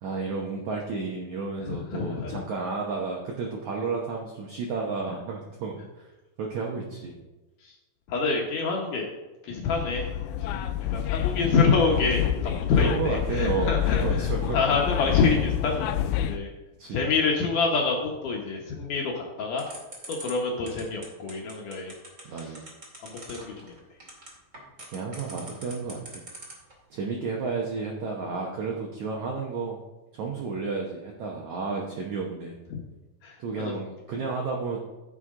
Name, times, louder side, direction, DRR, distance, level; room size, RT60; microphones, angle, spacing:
voice 1, 0.0-6.1 6.4-7.1 12.7-13.7 14.0-14.8 16.8-17.0 22.2-22.7 24.9-26.2 26.9-29.8 30.1-32.6 33.4-34.8, right 4 dB, 70° right, -1 dB, 1.8 m, -32 dB
voice 2, 1.7-2.4 7.6-7.7 8.1-9.1 9.4-10.1 10.5-10.6 10.9-16.5 16.9-19.7 20.1-21.9 22.4-22.5 23.0-23.7 32.7-32.8 33.2-33.7, left 4 dB, 65° left, -1 dB, 2.3 m, -27 dB
sound 1, 9.6-16.4, left 10 dB, 90° left, 2.7 m, -28 dB
sound 2, 19.6-26.7, right 2 dB, 25° right, 2.1 m, -42 dB
15.0 x 6.4 x 3.7 m, 1.1 s
omnidirectional pair, 4.7 m